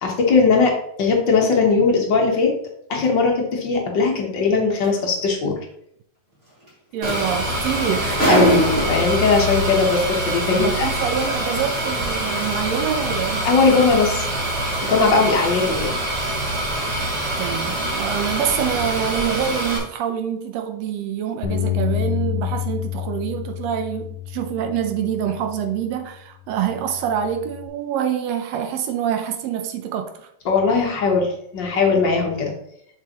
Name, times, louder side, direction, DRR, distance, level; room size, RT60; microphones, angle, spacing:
voice 1, 0.0-2.5 2.9-5.6 8.3-10.9 12.3-12.5 13.4-14.2 14.8-15.9 30.4-32.5, left 4 dB, 55° left, 1.3 m, -19 dB
sound 1, 4.8-5.0 6.7-6.8 7.0-9.3 10.2-10.3, right 1 dB, 25° right, 2.1 m, -23 dB
voice 2, 6.9-8.6 10.5-13.5 15.2-15.3 17.4-30.3, right 9 dB, 75° right, 1.7 m, -26 dB
sound 2, 7.0-19.8, right 1 dB, 45° right, 2.3 m, -25 dB
Bass guitar, 21.4-25.9 26.5-27.7, left 13 dB, 70° left, 1.5 m, -29 dB
6.9 x 6.6 x 2.9 m
omnidirectional pair, 3.3 m